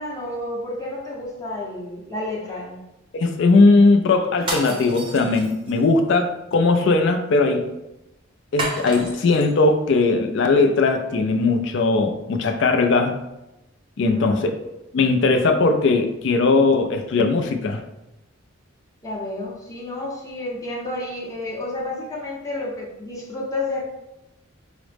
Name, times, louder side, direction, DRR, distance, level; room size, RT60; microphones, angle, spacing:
voice 1, 0.0-2.8 14.1-14.5 19.0-23.8, left 2 dB, 15° left, -4 dB, 0.6 m, -30 dB
voice 2, 3.1-7.7 8.5-13.2 14.0-14.7 14.9-17.8, left 3 dB, 55° left, 5 dB, 0.3 m, -19 dB
sound 1, 4.4-5.9 8.6-9.5, right 2 dB, 25° right, 0.6 m, -30 dB
4.7 x 2.0 x 3.2 m, 0.92 s
head